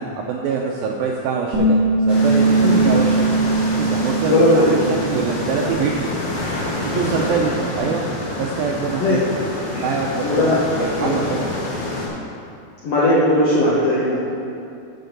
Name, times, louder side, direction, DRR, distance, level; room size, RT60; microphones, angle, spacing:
voice 1, 0.0-1.8 2.1-3.3 3.8-4.6 5.0-6.1 6.9-8.1 8.4-9.2 9.8-11.5, right 5 dB, 80° right, -1 dB, 2.1 m, -24 dB
Bass guitar, 1.5-5.9 6.2-7.8, right 3 dB, 65° right, 2.1 m, -21 dB
sound 1, 2.1-12.1, left 2 dB, 45° left, 2.0 m, -27 dB
voice 2, 2.6-2.9 4.3-4.7 6.9-7.2 9.0-9.2 9.7-9.8 10.2-10.6 11.0-11.1 12.8-14.3, left 1 dB, 80° left, -7 dB, 1.4 m, -18 dB
7.9 x 6.7 x 6.6 m, 2.5 s
omnidirectional pair, 4.8 m